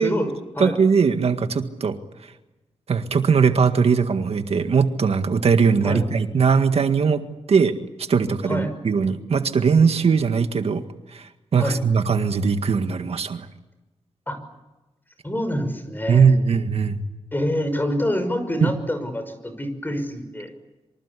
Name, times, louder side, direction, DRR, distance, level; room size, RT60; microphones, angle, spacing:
voice 1, 0.0-0.8 5.8-6.0 8.5-8.7 11.5-11.8 14.3-14.4 15.2-16.3 17.3-20.5, equal, 15° left, 9 dB, 6.0 m, -26 dB
voice 2, 0.6-1.9 2.9-7.2 7.5-7.7 8.1-10.8 11.1-13.4 16.1-17.0 18.6-18.7, right 5 dB, 65° right, 7 dB, 1.8 m, -20 dB
26.5 x 25.0 x 8.5 m, 1.0 s
wide cardioid pair, 100°, 11 cm